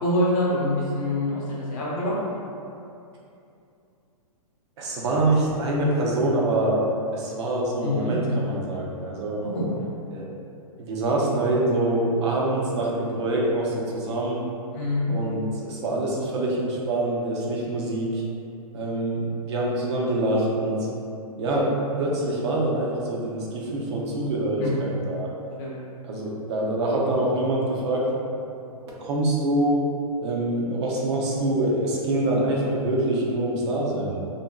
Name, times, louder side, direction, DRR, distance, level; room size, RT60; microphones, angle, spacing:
voice 1, 0.0-2.1 7.8-8.1 9.4-9.9 14.7-15.1 24.6-24.7 25.6-25.8, left 1 dB, 30° left, -7 dB, 0.7 m, -25 dB
voice 2, 4.8-6.8 7.1-9.4 10.1-10.2 10.8-14.4 15.1-18.2 18.7-20.8 21.4-21.7 22.0-25.3 26.0-28.2 29.0-29.9 30.2-34.2, right 1 dB, 45° right, -4 dB, 0.6 m, -25 dB
2.6 x 2.6 x 2.2 m, 2.6 s
hypercardioid pair, 150°, 19 cm